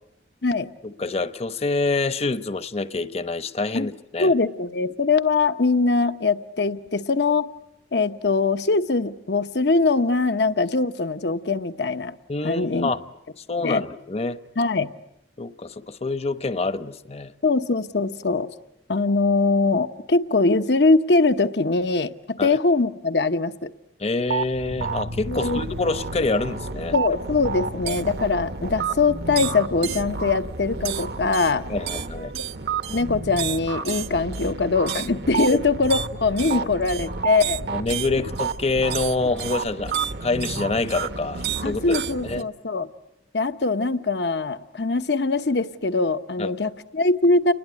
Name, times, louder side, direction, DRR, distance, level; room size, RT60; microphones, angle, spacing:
voice 1, 0.8-4.3 12.3-13.0 13.5-14.4 15.4-17.3 22.4-22.6 24.0-26.9 31.7-32.3 36.5-36.7 37.7-39.9 40.2-42.0 42.2-42.5 46.4-46.5, left 3 dB, 35° left, 0.9 m, -26 dB
voice 2, 4.2-7.5 7.9-12.1 12.4-12.9 13.6-13.8 14.6-14.9 17.4-18.5 18.9-22.1 22.4-23.5 25.3-25.6 26.9-31.6 32.3-32.4 32.9-37.6 41.6-42.9 43.3-47.5, left 3 dB, 70° left, 1.0 m, -22 dB
sound 1, 24.3-42.4, right 5 dB, 65° right, 1.0 m, -30 dB
29.5 x 21.0 x 9.7 m
head